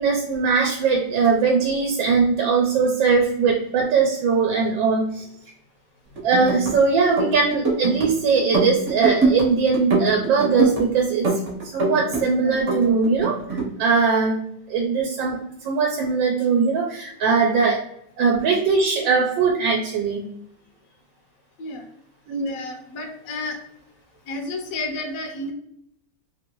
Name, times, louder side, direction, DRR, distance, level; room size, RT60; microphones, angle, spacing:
voice 1, 0.0-5.3 6.2-11.3 11.7-14.4 14.7-17.8 18.2-20.3 22.3-22.6, right 5 dB, 90° right, 0 dB, 1.3 m, -20 dB
sound 1, 6.2-6.7 7.0-8.1 8.4-9.5 9.7-10.8 11.2-12.2 12.5-13.7, right 3 dB, 50° right, 1.0 m, -23 dB
voice 2, 22.3-23.6 24.3-25.5, left 2 dB, 65° left, 2 dB, 1.0 m, -31 dB
3.1 x 2.6 x 2.8 m, 0.74 s
omnidirectional pair, 2.0 m